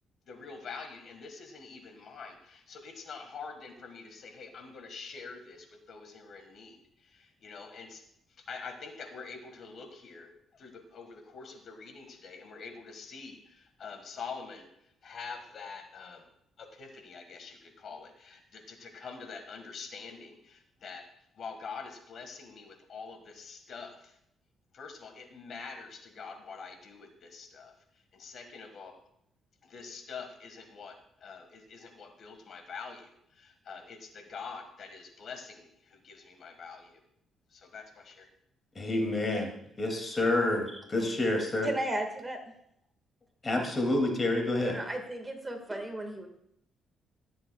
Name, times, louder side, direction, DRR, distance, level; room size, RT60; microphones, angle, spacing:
voice 1, 0.3-8.0 8.3-16.3 16.6-21.0 21.3-24.2 24.7-28.9 29.6-37.0 37.5-38.3, left 5 dB, 60° left, 6 dB, 1.6 m, -45 dB
voice 2, 38.7-39.5 39.8-41.7 43.4-44.8, left 2 dB, 30° left, 3 dB, 2.4 m, -28 dB
voice 3, 41.6-42.4 44.6-45.0 45.5-46.3, right 1 dB, 15° right, 4 dB, 1.7 m, -34 dB
17.0 x 7.6 x 2.3 m, 0.74 s
cardioid pair, 90°, 0 cm